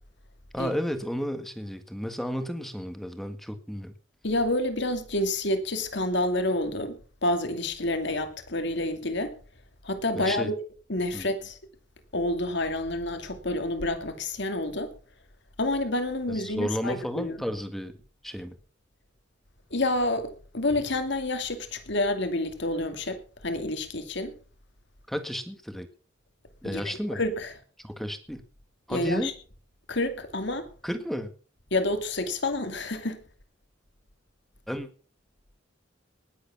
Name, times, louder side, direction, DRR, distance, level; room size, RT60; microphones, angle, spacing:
voice 1, 0.5-3.9 10.1-10.5 11.1-11.3 16.3-17.9 18.2-18.6 25.1-25.9 26.6-27.2 27.8-28.4 28.9-29.3 30.8-31.3 34.7-34.9, equal, ahead, 1.7 m, -32 dB
voice 2, 4.2-9.3 9.8-10.5 10.9-11.6 12.1-14.9 15.6-17.4 19.7-24.4 26.6-27.5 28.9-29.3 29.9-30.7 31.7-33.2, left 1 dB, 65° left, 2.5 m, -28 dB
19.5 x 8.2 x 6.1 m
head